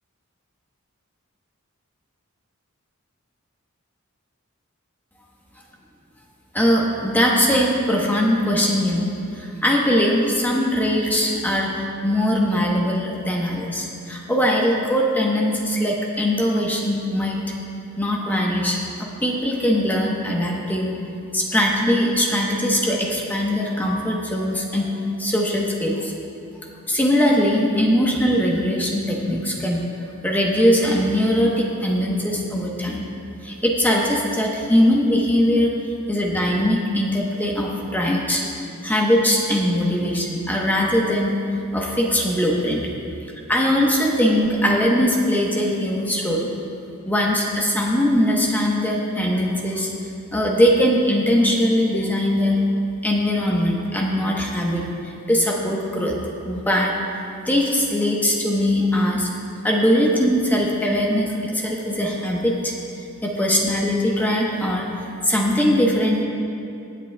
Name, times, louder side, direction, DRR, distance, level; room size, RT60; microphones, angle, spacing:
voice 1, 6.5-17.4 18.0-21.0 21.3-24.9 25.2-26.1 26.9-29.8 30.2-33.1 33.4-35.7 36.1-38.4 38.8-41.4 41.7-42.9 43.5-46.5 47.1-49.9 50.3-52.6 53.0-56.1 56.4-57.0 57.5-59.3 59.6-62.7 63.2-64.9 65.2-66.2, equal, 10° left, -2 dB, 1.0 m, -21 dB
22.5 x 8.1 x 2.3 m, 2.7 s
head